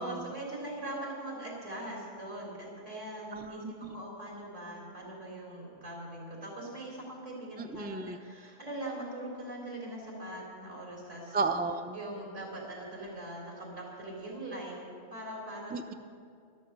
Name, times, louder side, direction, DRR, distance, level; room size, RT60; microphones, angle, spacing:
voice 1, 0.0-11.4 11.9-14.8 15.1-15.7, right 1 dB, 80° right, -3 dB, 4.4 m, -41 dB
voice 2, 3.3-4.0 7.6-8.2 11.3-12.0 15.7-15.9, right 4 dB, 15° right, 6 dB, 0.4 m, -33 dB
13.0 x 12.5 x 6.8 m, 2.3 s
omnidirectional pair, 1.2 m